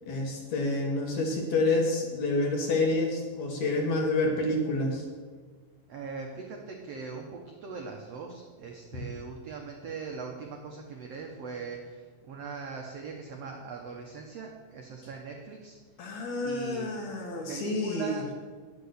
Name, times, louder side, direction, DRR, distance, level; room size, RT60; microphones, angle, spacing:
voice 1, 0.1-5.1 16.0-18.2, left 2 dB, 60° left, 2 dB, 2.1 m, -28 dB
voice 2, 5.9-16.1 16.4-16.9 17.5-18.3, right 4 dB, 80° right, 1 dB, 1.4 m, -40 dB
9.8 x 8.5 x 6.6 m, 1.5 s
omnidirectional pair, 4.2 m